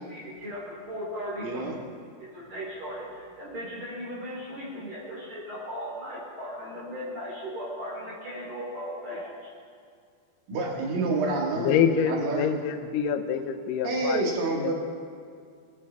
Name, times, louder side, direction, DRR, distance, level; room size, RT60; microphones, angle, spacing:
voice 1, 0.1-1.7 2.2-9.5, equal, 40° right, -7 dB, 4.6 m, -37 dB
voice 2, 1.4-1.8 10.5-12.5 13.8-14.7, right 2 dB, 60° right, -1 dB, 3.4 m, -28 dB
voice 3, 11.6-14.2 14.6-14.7, left 7 dB, 85° left, 7 dB, 1.9 m, -26 dB
23.5 x 11.5 x 3.6 m, 2.2 s
omnidirectional pair, 5.0 m